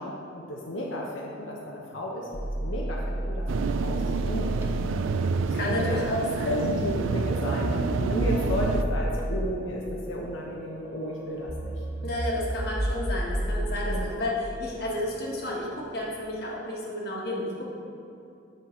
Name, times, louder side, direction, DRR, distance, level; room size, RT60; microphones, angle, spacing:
voice 1, 0.0-4.5 5.6-6.1 6.4-11.7 13.8-14.0, left 1 dB, 85° left, -3 dB, 0.9 m, -33 dB
sound 1, 1.9-5.2 6.9-16.0, right 1 dB, 10° right, 0.5 m, -32 dB
sound 2, 3.5-8.8, right 4 dB, 85° right, 0.3 m, -29 dB
voice 2, 5.5-6.6 12.0-17.6, left 1 dB, 55° left, -3 dB, 1.4 m, -31 dB
8.3 x 5.7 x 4.4 m, 2.7 s
head